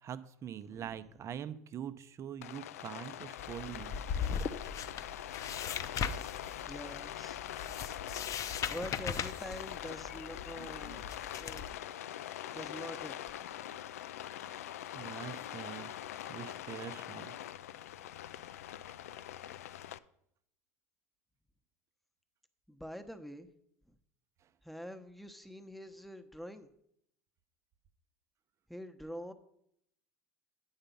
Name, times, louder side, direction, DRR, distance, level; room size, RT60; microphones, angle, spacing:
voice 1, 0.0-4.0 14.4-14.5 14.9-16.0 16.3-17.3, right 9 dB, 40° right, 14 dB, 0.7 m, -44 dB
voice 2, 0.7-1.0 6.7-7.4 8.6-11.0 11.4-11.7 12.5-13.8 22.7-23.5 23.9-24.0 24.6-26.7 28.7-29.3, equal, ahead, 7 dB, 0.9 m, -46 dB
Rain, 2.4-20.0, left 12 dB, 80° left, 0.4 m, -43 dB
sound 1, 3.4-11.7, left 7 dB, 40° left, 0.7 m, -39 dB
8.8 x 5.7 x 5.4 m, 0.73 s
hypercardioid pair, 80°, 8 cm